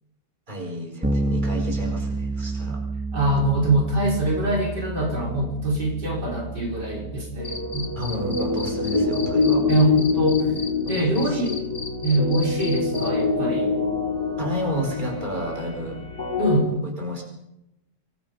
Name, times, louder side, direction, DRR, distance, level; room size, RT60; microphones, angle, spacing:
voice 1, 0.5-2.9 8.0-9.6 10.9-11.5 14.4-16.0 16.8-17.2, equal, 25° right, 1 dB, 5.1 m, -31 dB
Bass guitar, 1.0-10.7, right 2 dB, 5° right, 1.6 m, -31 dB
voice 2, 3.1-7.9 9.7-10.5 10.9-11.6 12.0-13.7 16.4-16.7, right 1 dB, 75° right, -1 dB, 6.0 m, -23 dB
sound 1, 7.4-16.6, left 4 dB, 70° left, 6.1 m, -25 dB
Cricket, 7.4-13.1, left 3 dB, 35° left, 2.2 m, -35 dB
25.5 x 23.0 x 5.5 m, 0.89 s
omnidirectional pair, 1.8 m